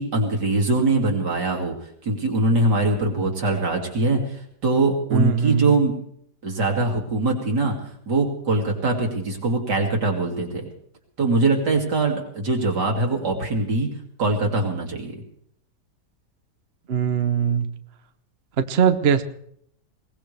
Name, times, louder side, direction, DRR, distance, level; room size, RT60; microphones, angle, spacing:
voice 1, 0.0-1.7 2.0-4.2 4.6-5.9 6.4-7.7 8.1-10.7 11.2-13.9 14.2-15.2, right 2 dB, 75° right, 0 dB, 3.4 m, -22 dB
voice 2, 5.1-5.7 16.9-17.7 18.6-19.2, right 7 dB, 45° right, 9 dB, 0.9 m, -20 dB
21.5 x 19.5 x 3.4 m, 0.67 s
omnidirectional pair, 1.8 m